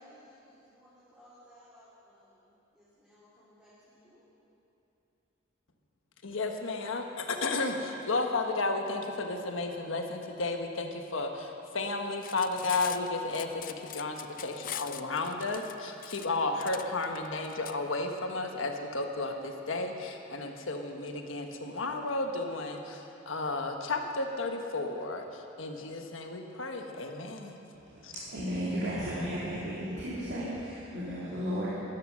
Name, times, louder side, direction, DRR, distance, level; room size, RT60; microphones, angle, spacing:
voice 1, 0.0-4.2 14.6-14.7, equal, 5° right, -12 dB, 3.3 m, -58 dB
voice 2, 6.2-27.6 28.0-28.1, left 3 dB, 90° left, 4 dB, 1.3 m, -33 dB
Cutlery silverware, 12.1-17.7, left 11 dB, 45° left, 0.5 m, -42 dB
voice 3, 27.7-31.7, equal, 60° right, -9 dB, 2.8 m, -34 dB
16.0 x 12.0 x 6.3 m, 3.0 s
head